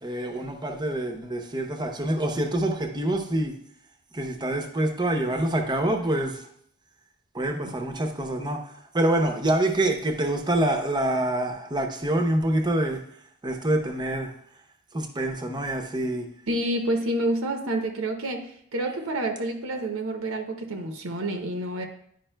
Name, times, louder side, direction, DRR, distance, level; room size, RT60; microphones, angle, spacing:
voice 1, 0.0-3.5 4.1-6.4 7.3-8.6 8.9-13.0 13.4-14.3 14.9-16.3, right 1 dB, 20° right, 4 dB, 0.6 m, -26 dB
voice 2, 16.5-21.9, right 1 dB, 70° right, 4 dB, 0.7 m, -28 dB
10.0 x 5.2 x 2.2 m, 0.67 s
head